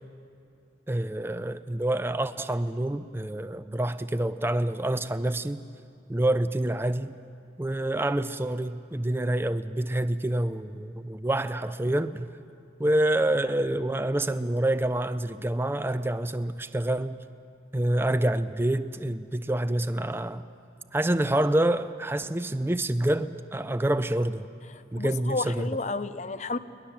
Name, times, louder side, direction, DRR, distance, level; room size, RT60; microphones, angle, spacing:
voice 1, 0.9-5.6 6.1-7.2 7.6-12.3 12.8-17.2 17.7-20.4 20.9-24.5 24.9-25.7, right 1 dB, 10° right, 0.4 m, -27 dB
voice 2, 24.7-26.6, left 3 dB, 35° left, 0.6 m, -32 dB
21.5 x 20.0 x 7.3 m
head